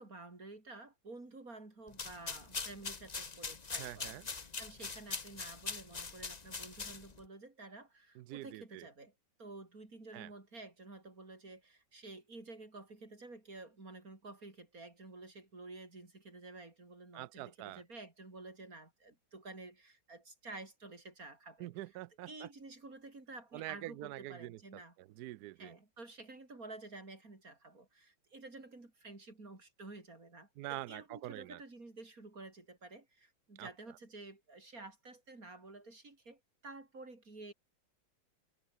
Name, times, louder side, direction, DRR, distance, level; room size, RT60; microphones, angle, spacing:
voice 1, 0.0-4.2 4.6-9.1 9.4-21.7 22.3-25.0 25.6-37.5, right 2 dB, 45° right, 5.2 m, -51 dB
sound 1, 1.9-7.2, left 4 dB, 25° left, 0.9 m, -42 dB
voice 2, 3.8-4.2 8.2-8.9 10.1-10.3 17.1-17.8 21.6-22.5 23.5-25.8 30.6-31.6 33.6-33.7, right 16 dB, 75° right, 0.9 m, -45 dB
omnidirectional pair, 2.2 m